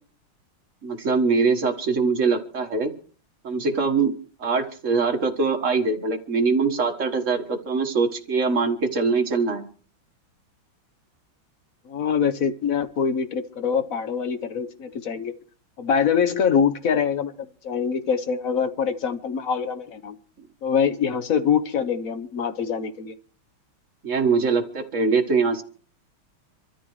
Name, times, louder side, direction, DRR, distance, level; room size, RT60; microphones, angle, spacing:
voice 1, 0.8-2.9 3.4-4.1 4.4-9.7 24.0-25.6, right 4 dB, 40° right, 5 dB, 1.6 m, -23 dB
voice 2, 11.8-15.3 15.8-17.3 17.6-20.2 20.6-23.1, left 7 dB, 55° left, 10 dB, 1.0 m, -24 dB
26.0 x 13.5 x 3.2 m, 0.43 s
omnidirectional pair, 2.4 m